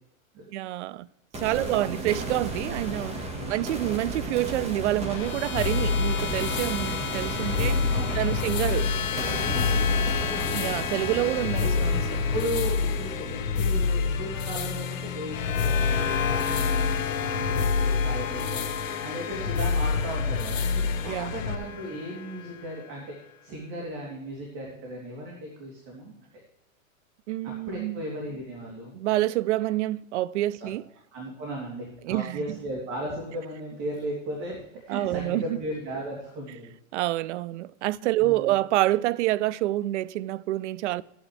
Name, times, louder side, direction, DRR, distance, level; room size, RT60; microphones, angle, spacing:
voice 1, 0.5-1.1 1.4-3.2 3.5-7.8 8.1-8.9 10.5-12.0 21.1-21.3 27.3-28.0 28.9-30.9 32.0-32.4 34.9-35.6 36.9-41.0, right 16 dB, 60° right, 0.5 m, -27 dB
sound 1, 1.3-15.3, right 2 dB, 15° right, 1.5 m, -35 dB
voice 2, 1.5-2.0 3.3-3.6 7.5-8.5 9.5-9.8 11.0-11.3 11.6-11.8 12.3-23.0 23.4-26.1 27.4-28.9 30.6-30.7 31.1-36.7 38.1-38.5, right 1 dB, 40° right, 3.0 m, -36 dB
sound 2, 5.1-23.2, left 8 dB, 90° left, 1.3 m, -34 dB
sound 3, 5.6-21.6, left 5 dB, 70° left, 1.5 m, -28 dB
14.0 x 9.1 x 3.3 m
hypercardioid pair, 140°, 41 cm